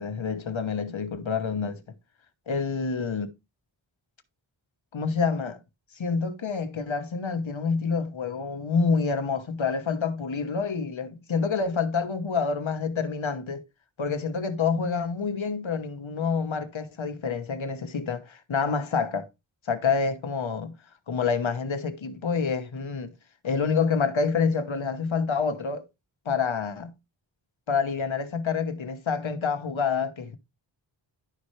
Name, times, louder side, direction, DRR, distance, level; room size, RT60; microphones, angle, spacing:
voice 1, 0.0-1.8 2.5-3.3 4.9-5.6 6.0-13.6 14.0-19.3 19.7-20.8 21.1-23.1 23.4-25.8 26.2-26.9 27.7-30.4, left 5 dB, 70° left, 1.1 m, -27 dB
11.0 x 5.5 x 3.1 m
wide cardioid pair, 80°, 48 cm